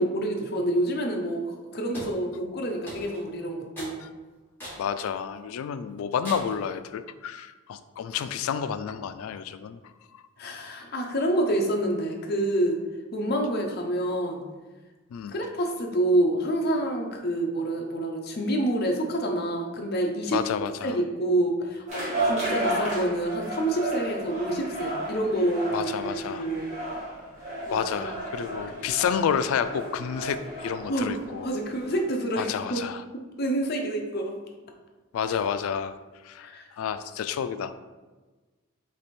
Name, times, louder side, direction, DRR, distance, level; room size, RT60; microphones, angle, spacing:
voice 1, 0.0-4.0 10.4-12.8 13.1-14.4 15.3-20.4 20.8-25.9 26.3-26.7 27.7-28.0 30.9-31.1 31.4-32.8 33.4-34.4 36.4-36.7, right 1 dB, 50° left, 2 dB, 0.6 m, -27 dB
sound 1, 1.9-2.2 2.9-3.3 3.8-4.0 4.6-4.9 5.4-5.5 6.2-6.6, equal, 10° left, 1.5 m, -39 dB
voice 2, 4.8-9.8 10.1-10.2 15.1-15.4 20.3-21.0 25.7-26.5 27.7-31.5 32.4-33.0 35.1-35.9 36.2-36.5 36.8-37.7, left 7 dB, 85° left, 12 dB, 0.3 m, -30 dB
sound 2, 21.9-32.0, right 1 dB, 35° right, 1.4 m, -33 dB
3.4 x 3.3 x 4.2 m, 1.3 s
head